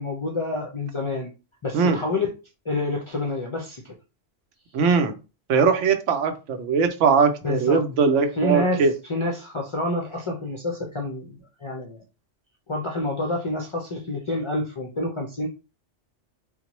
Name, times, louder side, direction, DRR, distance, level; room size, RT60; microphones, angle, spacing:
voice 1, 0.0-1.3 1.6-2.3 2.7-3.9 7.4-7.8 8.3-12.0 12.7-15.5, left 2 dB, 55° left, 0 dB, 0.3 m, -28 dB
voice 2, 4.7-5.1 5.5-8.9, right 5 dB, 85° right, 7 dB, 0.9 m, -20 dB
3.8 x 2.1 x 2.9 m, 0.31 s
omnidirectional pair, 1.2 m